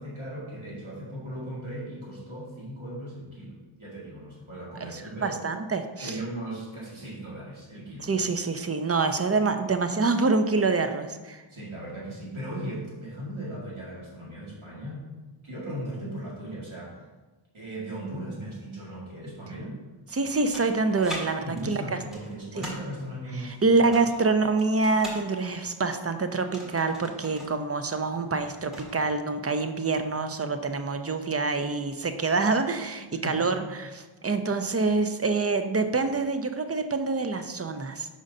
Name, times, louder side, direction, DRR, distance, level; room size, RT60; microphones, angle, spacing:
voice 1, 0.0-5.4 6.0-8.1 11.5-15.1 15.4-17.0 17.5-19.8 21.4-23.7 33.2-33.5, right 1 dB, 70° right, -6 dB, 2.1 m, -37 dB
voice 2, 4.9-6.2 8.0-11.4 20.1-21.8 22.6-22.7 23.4-38.1, right 3 dB, 30° right, 8 dB, 0.5 m, -26 dB
sound 1, 20.1-21.2 21.6-22.9 23.7-25.2 26.3-27.6 27.8-27.9 28.3-29.0, equal, ahead, 1.7 m, -41 dB
5.1 x 3.8 x 5.4 m, 1.2 s
wide cardioid pair, 50°, 49 cm